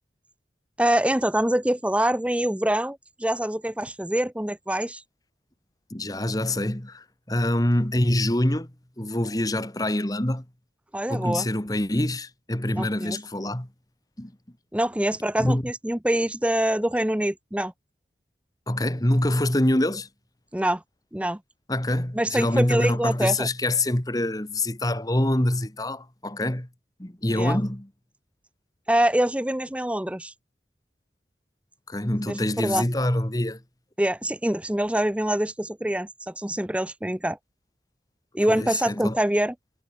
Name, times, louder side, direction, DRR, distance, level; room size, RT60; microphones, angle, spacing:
voice 1, 0.8-5.0 10.9-11.5 12.7-13.2 14.7-17.7 20.5-20.8 21.1-21.4 22.1-23.5 27.3-27.6 28.9-30.3 32.3-32.8 34.0-37.4 38.3-39.5, right 1 dB, 5° right, 0.6 m, -25 dB
voice 2, 5.9-8.7 9.0-10.4 11.1-13.7 14.2-14.3 15.4-15.6 18.7-20.1 21.7-26.7 27.0-27.9 31.9-33.6 38.5-39.1, left 1 dB, 20° left, 1.6 m, -25 dB
head